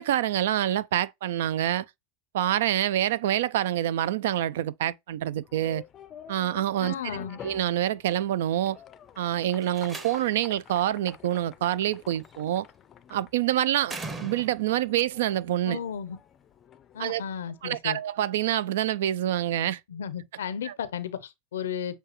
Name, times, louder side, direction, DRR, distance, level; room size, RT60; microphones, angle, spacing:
voice 1, 0.0-1.9 2.3-5.8 6.3-7.2 7.4-8.8 9.2-12.7 13.1-15.8 17.0-17.2 17.6-19.8 20.6-20.7, right 12 dB, 75° right, 0.3 m, -26 dB
sound 1, 5.4-18.2, left 9 dB, 35° left, 0.4 m, -49 dB
voice 2, 6.8-7.4 15.7-16.2 16.9-18.0 19.9-22.0, left 8 dB, 85° left, 0.5 m, -34 dB
Slam, 9.5-10.6 12.1-12.5 13.8-14.8, right 3 dB, 20° right, 0.9 m, -40 dB
6.7 x 2.3 x 3.0 m
hypercardioid pair, 105°, 0 cm